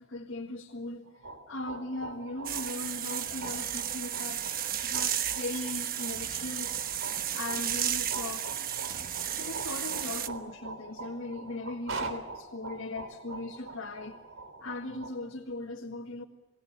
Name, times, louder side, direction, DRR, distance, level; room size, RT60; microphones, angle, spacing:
voice 1, 0.0-6.8 7.3-8.5 9.0-9.1 9.4-14.2 14.6-16.2, left 2 dB, 65° left, 1.9 m, -39 dB
sound 1, 1.1-15.1, right 3 dB, 80° right, 3.4 m, -43 dB
sound 2, 2.5-10.3, right 10 dB, 45° right, 1.2 m, -33 dB
29.0 x 19.5 x 7.4 m
head